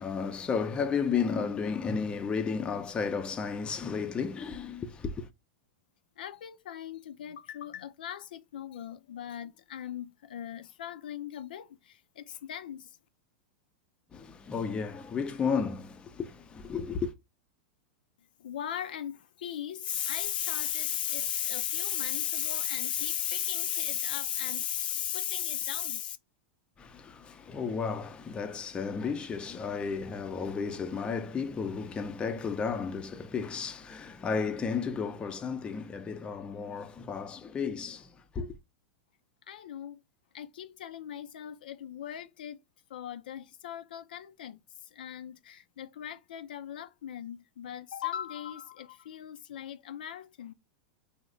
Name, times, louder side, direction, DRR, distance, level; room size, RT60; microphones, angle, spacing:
voice 1, 0.0-5.3 14.1-17.1 26.8-38.5, left 5 dB, 20° left, 0.5 m, -33 dB
voice 2, 6.2-13.0 18.4-26.2 39.5-40.0 40.3-42.6 42.9-44.6 44.9-50.5, left 10 dB, 80° left, 0.4 m, -36 dB
3.0 x 2.1 x 3.7 m
hypercardioid pair, 110°, 5 cm